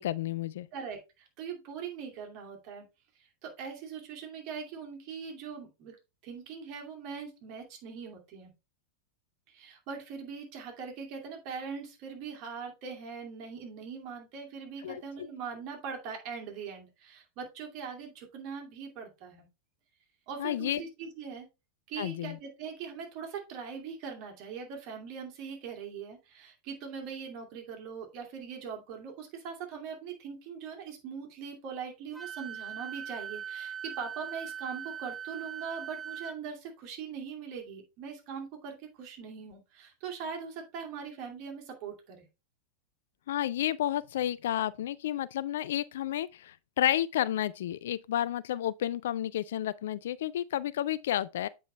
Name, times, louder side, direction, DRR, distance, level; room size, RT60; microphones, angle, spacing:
voice 1, 0.0-0.7 14.8-15.0 20.4-20.8 22.0-22.4 43.3-51.5, left 12 dB, 60° left, 0.3 m, -31 dB
voice 2, 0.7-2.8 3.4-6.0 6.2-8.5 9.5-19.5 20.3-21.5 21.9-42.3, right 6 dB, 40° right, 2.4 m, -41 dB
Wind instrument woodwind instrument, 32.1-36.4, right 8 dB, 5° right, 0.7 m, -40 dB
8.2 x 5.3 x 3.3 m
figure-of-eight pair, 90°, 0 cm